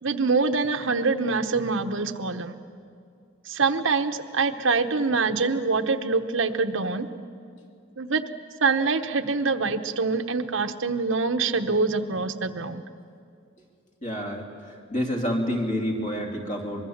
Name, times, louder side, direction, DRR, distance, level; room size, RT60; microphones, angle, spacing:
voice 1, 0.0-2.6 3.5-7.1 8.0-8.2 8.6-12.8, right 4 dB, 85° right, 8 dB, 1.1 m, -25 dB
voice 2, 14.0-16.8, equal, 40° left, 1 dB, 3.0 m, -28 dB
25.0 x 21.5 x 7.3 m, 2.3 s
head